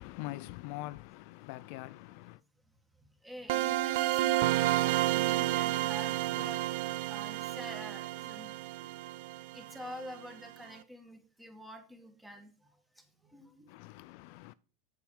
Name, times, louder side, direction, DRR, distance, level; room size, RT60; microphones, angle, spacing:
voice 1, 0.0-2.4 13.7-14.5, left 18 dB, 60° left, 0.3 m, -43 dB
voice 2, 3.2-6.8 7.1-8.5 8.8-9.0 9.5-12.7 13.0-13.7, equal, 5° right, 1.7 m, -47 dB
sound 1, 3.5-10.2, right 15 dB, 70° right, 0.4 m, -31 dB
7.6 x 6.9 x 4.8 m
supercardioid pair, 135°, 0 cm